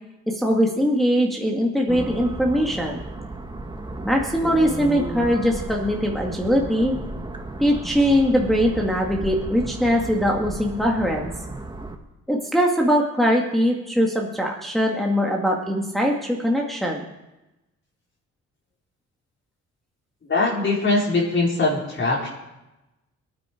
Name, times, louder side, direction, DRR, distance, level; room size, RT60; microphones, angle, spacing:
voice 1, 0.3-3.0 4.0-7.0 7.6-11.3 12.3-17.1, equal, ahead, -1 dB, 2.1 m, -21 dB
sound 1, 1.9-12.0, right 2 dB, 15° right, 1.7 m, -34 dB
voice 2, 20.2-22.3, left 3 dB, 40° left, -4 dB, 4.4 m, -22 dB
21.5 x 9.7 x 4.6 m, 0.98 s
cardioid pair, 90°, 30 cm